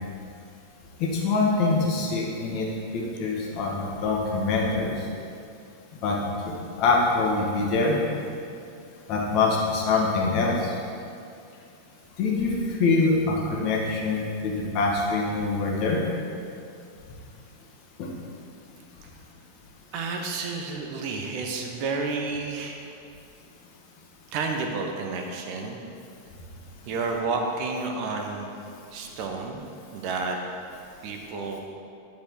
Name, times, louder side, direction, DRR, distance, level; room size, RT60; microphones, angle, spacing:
voice 1, 1.0-2.7 2.9-5.1 6.0-6.2 6.4-8.0 9.1-10.8 12.2-16.0 18.0-18.1, left 3 dB, 40° left, -3 dB, 1.8 m, -24 dB
voice 2, 19.9-22.8 24.3-25.8 26.9-28.5 28.9-29.6 29.9-30.4 31.0-31.6, right 4 dB, 45° right, 2 dB, 0.9 m, -30 dB
10.0 x 5.1 x 4.8 m, 2.5 s
figure-of-eight pair, 90°, 0 cm